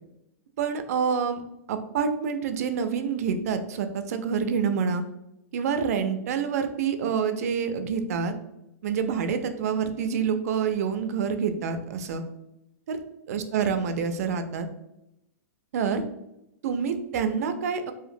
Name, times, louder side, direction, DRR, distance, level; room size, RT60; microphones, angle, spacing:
voice 1, 0.6-1.4 1.7-5.0 5.5-8.3 8.8-12.2 12.9-13.0 13.3-14.7 15.7-16.0 16.6-17.9, right 6 dB, 65° right, 8 dB, 0.4 m, -27 dB
2.8 x 2.5 x 2.5 m, 0.86 s
hypercardioid pair, 145°, 9 cm